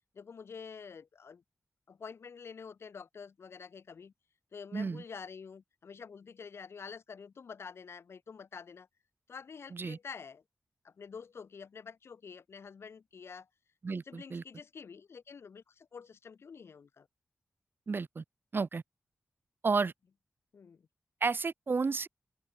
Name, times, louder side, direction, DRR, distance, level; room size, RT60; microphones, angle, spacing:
voice 1, 0.1-1.4 1.9-4.1 4.5-8.9 9.3-10.4 10.8-13.5 14.1-17.1 20.5-20.9, left 6 dB, 80° left, 2.7 m, -48 dB
voice 2, 4.7-5.0 9.7-10.0 13.8-14.4 17.9-18.2 18.5-18.8 19.6-19.9 21.2-22.1, right 4 dB, 55° right, 1.6 m, -32 dB
open air
wide cardioid pair, 75°, 4 cm